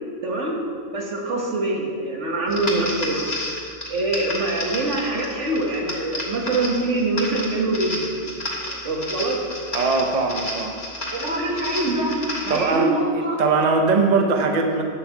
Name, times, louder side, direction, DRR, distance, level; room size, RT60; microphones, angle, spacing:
voice 1, 0.2-0.6 0.9-3.3 3.9-8.1 8.8-9.4 11.1-12.2 12.5-13.4, right 2 dB, 85° right, -1 dB, 1.9 m, -24 dB
sound 1, 2.5-12.8, left 1 dB, 35° left, 1.8 m, -31 dB
voice 2, 9.7-10.8 12.5-14.8, right 4 dB, 40° right, 3 dB, 0.9 m, -21 dB
10.0 x 5.5 x 7.3 m, 2.2 s
omnidirectional pair, 1.2 m